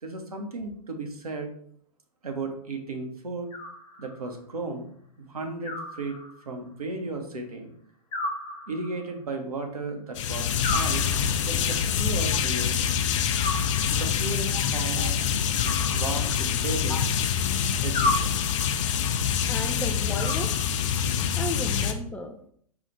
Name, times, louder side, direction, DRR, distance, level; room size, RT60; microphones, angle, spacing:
voice 1, 0.0-1.5 2.2-3.5 4.0-4.9 5.2-6.2 6.5-7.7 8.7-11.1 11.4-12.8 13.9-15.2 15.9-17.0 17.8-18.4, right 3 dB, 80° right, 3 dB, 1.0 m, -34 dB
Animal, 3.5-4.4 5.6-6.7 8.1-9.2 10.6-11.6 13.4-14.3 15.6-16.7 17.9-18.9 20.2-21.1, left 2 dB, 30° left, 1.1 m, -33 dB
sound 1, 10.1-21.9, left 8 dB, 55° left, 0.6 m, -26 dB
voice 2, 19.5-20.6 21.4-22.5, left 1 dB, 5° left, 4 dB, 0.3 m, -34 dB
4.9 x 2.4 x 4.0 m, 0.62 s
figure-of-eight pair, 105°, 19 cm